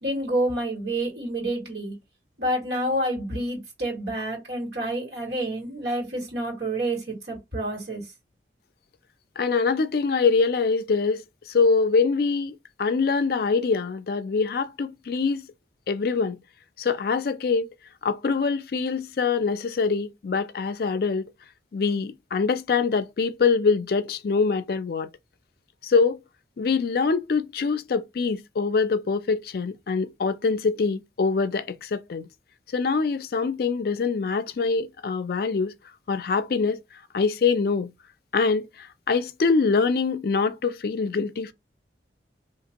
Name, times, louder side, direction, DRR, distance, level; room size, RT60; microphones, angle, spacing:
voice 1, 0.0-1.9 2.4-8.0, right 1 dB, 70° right, 1.9 m, -28 dB
voice 2, 9.4-15.5 15.9-16.4 16.8-17.7 18.0-21.3 21.7-25.1 25.8-26.2 26.6-32.3 32.7-35.7 36.1-36.8 37.1-37.9 38.3-41.5, left 4 dB, 55° left, 0.4 m, -24 dB
3.3 x 2.8 x 2.9 m
head